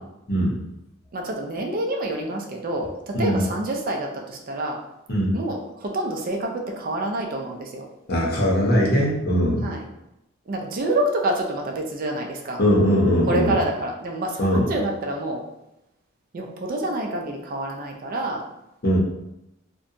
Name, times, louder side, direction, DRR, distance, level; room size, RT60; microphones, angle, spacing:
voice 1, 1.1-4.8 5.3-7.8 9.6-9.9 10.5-12.6 13.3-15.4 16.3-18.4, right 1 dB, 45° right, 1 dB, 0.4 m, -27 dB
voice 2, 8.1-9.7 12.6-13.5 14.4-14.7 18.8-19.0, equal, 50° left, -3 dB, 0.7 m, -20 dB
2.7 x 2.1 x 2.5 m, 0.87 s
head